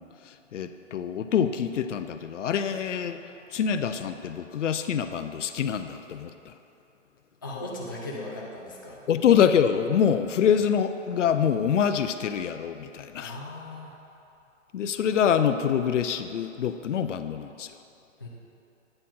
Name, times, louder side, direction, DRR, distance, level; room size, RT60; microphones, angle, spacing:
voice 1, 0.0-3.2 3.5-6.5 9.1-13.4 14.7-17.8, left 8 dB, 70° left, 10 dB, 0.5 m, -25 dB
voice 2, 7.4-9.0 13.2-13.9 18.2-18.3, left 2 dB, 20° left, -4 dB, 0.3 m, -37 dB
8.8 x 4.3 x 5.5 m, 2.8 s
hypercardioid pair, 145°, 38 cm